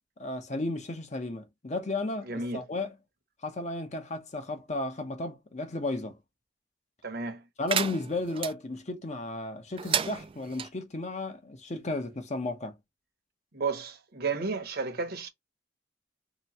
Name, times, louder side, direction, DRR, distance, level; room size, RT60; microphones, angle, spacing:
voice 1, 0.2-2.9 3.4-6.2 7.6-12.8, left 2 dB, 40° left, 0.9 m, -34 dB
voice 2, 2.2-2.6 7.0-7.5 13.5-15.3, right 4 dB, 55° right, 1.0 m, -32 dB
sound 1, 7.7-8.5 9.8-10.7, right 8 dB, 30° right, 0.3 m, -31 dB
3.3 x 3.0 x 4.2 m
head